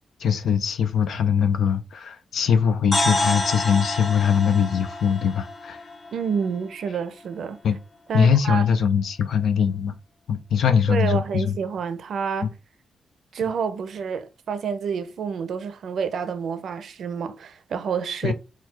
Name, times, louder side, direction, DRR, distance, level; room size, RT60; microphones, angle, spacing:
voice 1, 0.2-5.8 7.6-7.8 8.1-9.9 10.3-11.5 18.2-18.3, left 7 dB, 75° left, 0.5 m, -21 dB
sound 1, 2.9-6.9, left 2 dB, 45° left, 1.5 m, -28 dB
voice 2, 6.1-7.6 8.1-8.7 10.9-12.5 13.3-18.3, right 6 dB, 70° right, 0.5 m, -28 dB
4.4 x 2.3 x 4.5 m
cardioid pair, 60°, 0 cm